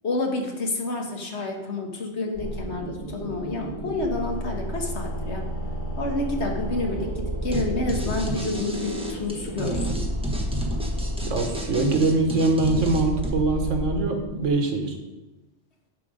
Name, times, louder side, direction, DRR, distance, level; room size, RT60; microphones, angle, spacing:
voice 1, 0.0-5.4 6.0-10.0, left 2 dB, 65° left, 1 dB, 1.7 m, -29 dB
sound 1, 2.3-14.5, equal, 25° left, 2.9 m, -32 dB
sound 2, 7.5-7.6 7.9-13.3, right 2 dB, 5° right, 1.1 m, -31 dB
voice 2, 11.2-14.9, right 3 dB, 85° right, 4 dB, 1.5 m, -23 dB
11.5 x 4.6 x 5.0 m, 1.1 s
omnidirectional pair, 1.2 m